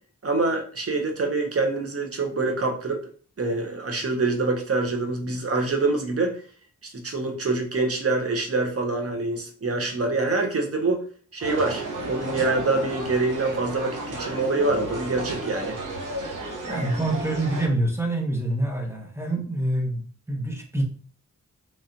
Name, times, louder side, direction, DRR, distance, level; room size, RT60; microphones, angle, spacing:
voice 1, 0.2-3.0 3.4-6.4 6.8-11.0 11.3-15.8, right 3 dB, 45° right, 3 dB, 0.8 m, -25 dB
sound 1, 11.4-17.7, right 2 dB, 75° right, 0.9 m, -33 dB
voice 2, 16.7-20.8, right 1 dB, 10° right, 1 dB, 0.9 m, -26 dB
3.1 x 2.9 x 2.5 m, 0.42 s
cardioid pair, 55°, 31 cm